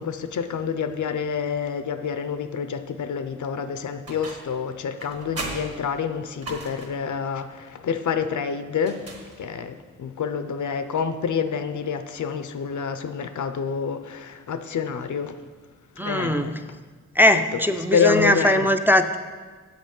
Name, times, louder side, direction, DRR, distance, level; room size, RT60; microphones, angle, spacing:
voice 1, 0.0-9.0 9.4-15.4 16.0-16.6 17.9-18.7, left 6 dB, 80° left, 0.6 m, -28 dB
sound 1, 4.1-4.6 5.0-7.1 8.8-9.7, right 2 dB, 55° right, 1.5 m, -37 dB
voice 2, 16.0-16.6 17.2-19.2, left 1 dB, 5° right, 0.3 m, -20 dB
8.0 x 7.7 x 5.3 m
wide cardioid pair, 135°, 30 cm